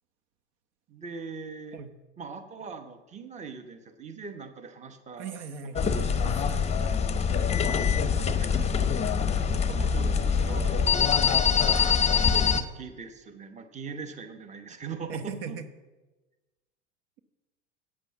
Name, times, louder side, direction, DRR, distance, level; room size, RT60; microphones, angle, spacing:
voice 1, 0.9-1.8 2.2-5.3 5.7-5.9 6.6-6.9 7.7-9.0 9.4-11.6 12.5-15.6, right 5 dB, 20° right, 7 dB, 1.0 m, -42 dB
voice 2, 5.2-6.7 9.7-9.8 12.5-12.7 15.1-15.7, right 5 dB, 70° right, 10 dB, 1.1 m, -39 dB
sound 1, 5.8-12.6, left 6 dB, 20° left, 0.7 m, -24 dB
8.7 x 7.5 x 7.3 m, 1.2 s
hypercardioid pair, 95°, 35 cm